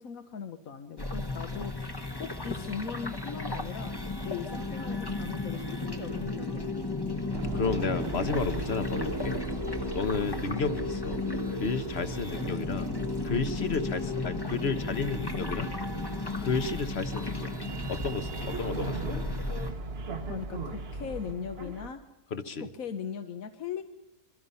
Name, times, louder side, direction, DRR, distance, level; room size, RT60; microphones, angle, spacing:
voice 1, 0.0-1.9 2.2-3.9 4.2-6.7 20.3-22.0 22.6-23.8, left 7 dB, 60° left, 7 dB, 1.4 m, -39 dB
sound 1, 1.0-19.7, left 2 dB, 15° left, 1.1 m, -34 dB
sound 2, 7.3-21.9, right 3 dB, 45° right, 1.2 m, -39 dB
voice 2, 7.5-9.4 9.9-12.9 13.2-15.7 16.4-17.5 17.9-19.2 22.3-22.7, left 4 dB, 45° left, 11 dB, 1.3 m, -32 dB
26.0 x 22.5 x 5.6 m, 0.91 s
omnidirectional pair, 1.7 m